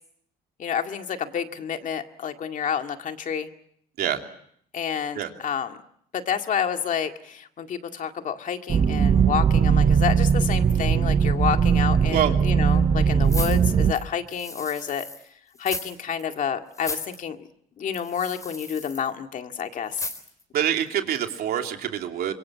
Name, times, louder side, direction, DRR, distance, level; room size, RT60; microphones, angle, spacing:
voice 1, 0.6-3.5 4.7-5.8 6.1-15.1 15.6-17.4 17.8-20.0, left 8 dB, 50° left, 6 dB, 2.1 m, -29 dB
sound 1, 8.7-13.9, right 7 dB, 35° right, 0.9 m, -20 dB
sound 2, 13.3-15.2 15.6-16.2 16.7-17.2 17.9-19.1 19.9-20.4 20.9-21.0, left 2 dB, 20° left, 4.1 m, -35 dB
voice 2, 20.5-22.3, right 10 dB, 65° right, 4 dB, 3.0 m, -25 dB
26.0 x 23.0 x 7.4 m, 0.69 s
cardioid pair, 110°, 17 cm